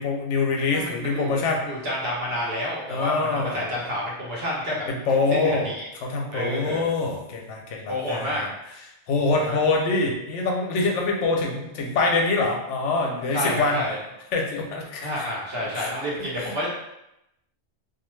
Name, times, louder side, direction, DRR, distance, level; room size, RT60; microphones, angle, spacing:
voice 1, 0.0-1.7 2.8-3.6 4.9-5.7 6.0-8.5 9.1-13.8 14.3-15.3 15.6-15.9 16.2-16.5, left 3 dB, 90° left, 0 dB, 0.9 m, -25 dB
voice 2, 0.7-4.8 5.3-5.9 6.3-6.8 7.9-8.4 9.1-9.6 13.3-14.0 15.0-16.7, equal, 60° right, -5 dB, 1.1 m, -29 dB
2.5 x 2.3 x 3.1 m, 0.86 s
omnidirectional pair, 1.2 m